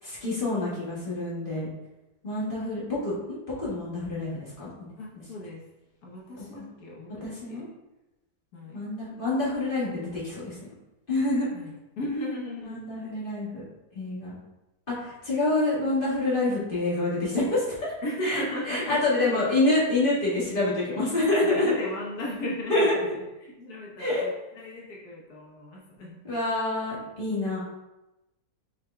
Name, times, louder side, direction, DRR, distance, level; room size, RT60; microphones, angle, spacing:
voice 1, 0.0-1.7 2.2-4.7 6.6-6.7 7.2-7.6 8.7-10.6 11.1-11.5 12.6-13.6 13.9-14.3 14.9-17.9 18.2-21.7 22.7-23.0 24.0-24.3 26.2-27.6, left 2 dB, 30° left, -9 dB, 1.6 m, -27 dB
voice 2, 5.0-5.7 6.0-7.6 8.5-8.8 11.5-12.8 18.0-19.6 21.2-23.1 23.4-26.2, left 1 dB, 65° left, -3 dB, 1.3 m, -36 dB
6.2 x 3.7 x 2.2 m, 0.98 s
omnidirectional pair, 1.9 m